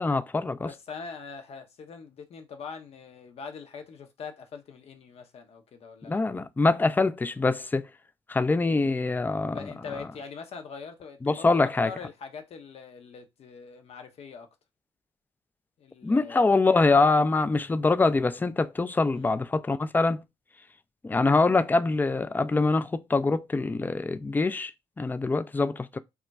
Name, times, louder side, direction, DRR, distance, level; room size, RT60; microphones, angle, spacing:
voice 1, 0.0-0.7 6.1-7.9 8.3-9.7 11.2-11.9 16.0-20.2 21.0-24.7 25.0-26.0, left 3 dB, 15° left, 0.3 m, -24 dB
voice 2, 0.6-6.2 9.5-14.5 15.8-16.6 19.1-19.3, left 5 dB, 60° left, 0.7 m, -42 dB
2.3 x 2.1 x 3.9 m
supercardioid pair, 55°, 12 cm